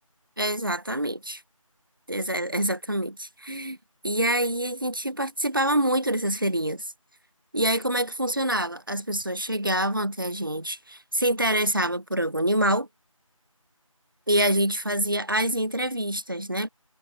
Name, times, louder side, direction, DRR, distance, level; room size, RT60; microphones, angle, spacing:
voice 1, 0.4-1.4 2.1-3.8 4.0-6.8 7.5-12.9 14.3-16.7, right 1 dB, 40° right, 1.5 m, -26 dB
figure-of-eight pair, 180°, 18 cm